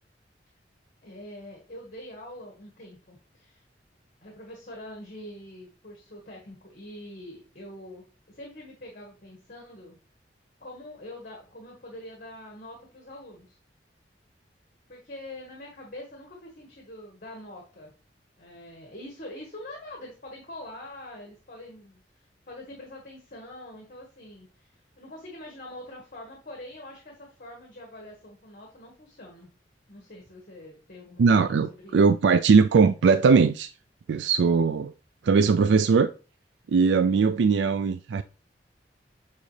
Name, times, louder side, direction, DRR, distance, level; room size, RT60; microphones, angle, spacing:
voice 1, 1.0-3.6 4.2-10.0 10.6-13.6 14.9-17.9 18.4-22.0 22.5-29.5 29.9-32.0, left 1 dB, 50° left, 1.7 m, -44 dB
voice 2, 31.2-33.7 34.1-34.9 35.2-36.1 36.7-38.2, right 5 dB, 75° right, 0.4 m, -20 dB
8.5 x 4.0 x 3.2 m
head